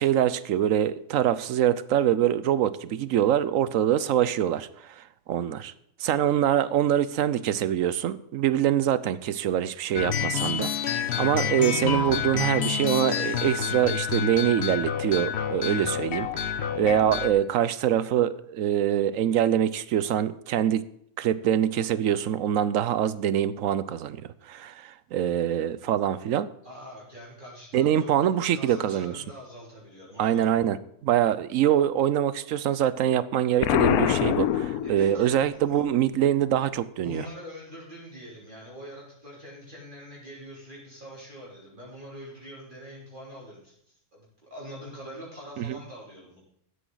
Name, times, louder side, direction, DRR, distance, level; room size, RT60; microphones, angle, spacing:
voice 1, 0.0-4.7 5.0-5.7 6.0-10.7 11.2-20.8 21.2-26.5 27.7-29.2 30.2-37.2 45.6-45.8, right 10 dB, 70° right, 16 dB, 1.0 m, -24 dB
sound 1, 10.0-17.3, left 7 dB, 55° left, 1.0 m, -28 dB
voice 2, 26.6-28.2 28.5-30.6 34.8-35.8 37.0-46.4, equal, 35° right, -6 dB, 3.4 m, -44 dB
Explosion, 33.6-35.4, left 12 dB, 85° left, 1.1 m, -24 dB
13.0 x 9.9 x 3.9 m, 0.73 s
omnidirectional pair, 1.5 m